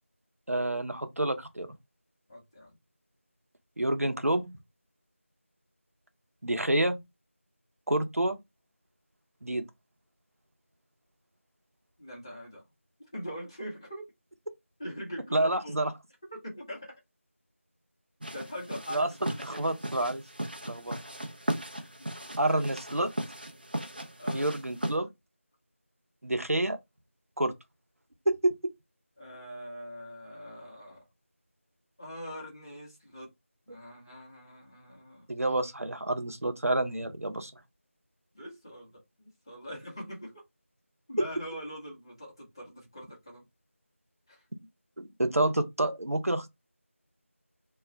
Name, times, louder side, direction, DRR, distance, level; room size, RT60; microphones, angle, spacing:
voice 1, 0.5-1.7 3.8-4.5 6.4-7.0 7.9-8.4 9.4-9.7 15.3-15.9 18.9-19.1 19.4-20.2 20.7-21.0 22.4-23.1 24.3-25.1 26.2-26.8 27.4-27.5 28.3-28.5 35.3-37.5 45.0-46.5, right 1 dB, 90° right, 0.6 m, -28 dB
voice 2, 2.3-2.8 12.0-12.6 13.1-14.0 14.8-15.8 16.4-16.9 18.3-19.7 22.0-22.7 24.2-24.5 29.2-31.0 32.0-33.3 33.7-35.3 38.3-40.4 41.1-43.4 44.3-44.4, equal, 20° left, 0.7 m, -43 dB
sound 1, 18.2-25.0, right 1 dB, 40° right, 0.5 m, -37 dB
2.3 x 2.1 x 3.7 m
figure-of-eight pair, 170°, 8 cm